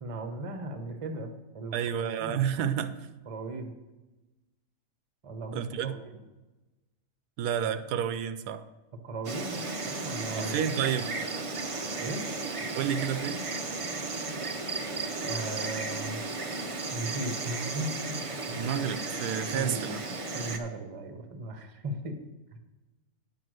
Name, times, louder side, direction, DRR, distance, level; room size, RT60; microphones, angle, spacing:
voice 1, 0.0-2.4 3.3-3.7 5.2-6.2 9.0-10.6 12.0-12.3 15.2-16.2 16.9-18.2 18.5-18.6 19.5-19.8 20.3-22.2 22.5-22.6, right 2 dB, 25° right, 6 dB, 0.8 m, -37 dB
voice 2, 1.7-2.9 5.5-5.9 7.4-8.6 10.3-11.1 12.7-13.4 18.5-20.0, right 9 dB, 85° right, 11 dB, 1.1 m, -30 dB
Insect, 9.2-20.6, right 3 dB, 45° right, 0.4 m, -34 dB
9.1 x 5.5 x 6.3 m, 1.1 s
omnidirectional pair, 1.6 m